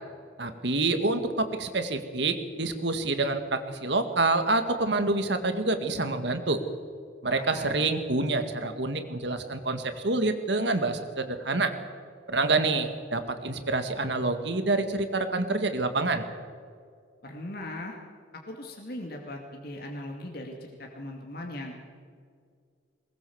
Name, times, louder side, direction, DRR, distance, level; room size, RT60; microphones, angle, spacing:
voice 1, 0.4-6.6 7.2-11.7 12.3-16.3, right 2 dB, 65° right, 8 dB, 1.9 m, -27 dB
voice 2, 7.3-7.9 17.2-18.0 18.5-21.8, left 1 dB, 55° left, 0 dB, 2.4 m, -39 dB
22.5 x 19.5 x 7.2 m, 2.1 s
head